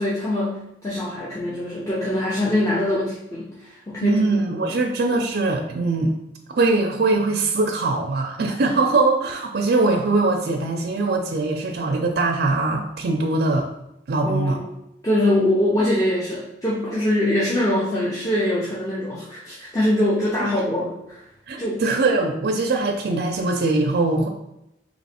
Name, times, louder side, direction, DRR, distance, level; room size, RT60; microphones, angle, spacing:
voice 1, 0.0-4.8 14.2-14.7 15.0-21.2 21.6-21.8, left 1 dB, 20° left, -7 dB, 0.6 m, -23 dB
voice 2, 4.0-6.1 6.5-13.7 14.1-14.6 20.4-20.5 21.5-24.3, right 3 dB, 55° right, 2 dB, 0.4 m, -22 dB
3.0 x 2.9 x 4.2 m, 0.84 s
head